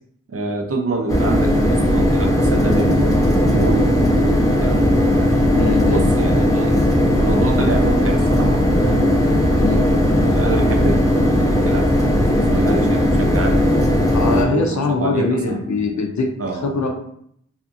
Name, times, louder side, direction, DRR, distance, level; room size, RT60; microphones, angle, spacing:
voice 1, 0.3-5.1 5.9-6.8 7.2-9.7 10.2-13.6 14.2-16.0 16.4-16.8, right 3 dB, 50° right, 3 dB, 0.5 m, -27 dB
sound 1, 1.1-14.4, left 1 dB, 10° left, 0.6 m, -17 dB
voice 2, 5.5-6.1 9.6-9.9 14.1-16.3 16.6-16.9, left 4 dB, 70° left, 2 dB, 0.5 m, -21 dB
2.7 x 2.5 x 2.5 m, 0.68 s
wide cardioid pair, 60°, 30 cm